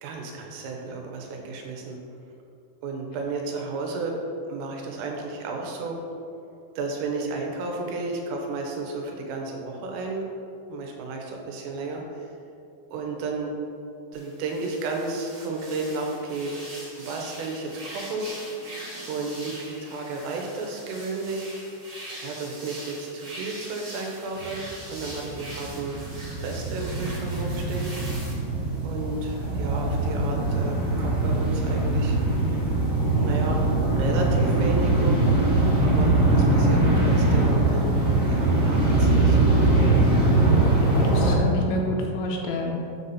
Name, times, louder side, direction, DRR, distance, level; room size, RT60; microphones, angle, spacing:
voice 1, 0.0-2.0 2.8-4.2 4.5-6.0 6.8-10.3 10.7-12.3 12.9-13.5 14.1-16.5 17.0-18.3 19.1-21.5 22.2-26.0 26.4-27.9 28.8-32.2 33.2-33.7 34.0-35.3 35.8-36.8 37.1-38.0 38.3-39.4 39.8-40.0, right 3 dB, 85° right, 1 dB, 3.7 m, -32 dB
sound 1, 14.1-28.3, right 1 dB, 50° right, 1.3 m, -42 dB
sound 2, 24.3-24.5 24.8-41.3, right 2 dB, 65° right, 0.8 m, -22 dB
voice 2, 40.7-42.8, left 1 dB, 80° left, 0 dB, 2.8 m, -29 dB
8.3 x 4.1 x 7.0 m, 2.6 s
omnidirectional pair, 5.7 m